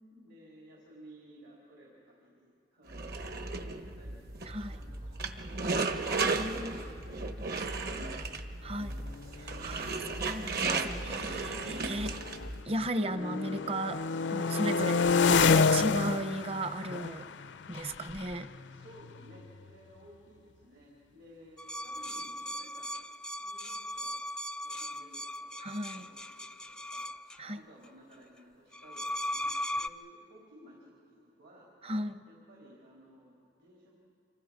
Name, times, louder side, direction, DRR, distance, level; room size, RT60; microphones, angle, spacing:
voice 1, 0.1-4.2 4.7-5.7 7.5-9.7 18.2-18.4 18.7-22.9 23.4-24.2 24.6-25.6 25.9-27.1 27.5-31.7 32.3-33.9, equal, 75° right, -3 dB, 4.0 m, -57 dB
sound 1, 2.9-12.6, right 3 dB, 60° right, 1.3 m, -35 dB
voice 2, 6.2-6.7 8.6-9.0 9.6-12.1 12.7-14.0 14.3-17.3 17.7-18.5 25.6-26.1 27.4-27.6 31.8-32.2, right 1 dB, 35° right, 10 dB, 0.8 m, -35 dB
sound 2, 7.3-7.4 7.7-8.0 8.8-12.7 13.0-19.7, left 5 dB, 80° left, 0.5 m, -30 dB
sound 3, 21.6-27.4 28.7-29.9, left 1 dB, 5° left, 0.5 m, -38 dB
26.5 x 24.5 x 5.2 m, 2.6 s
head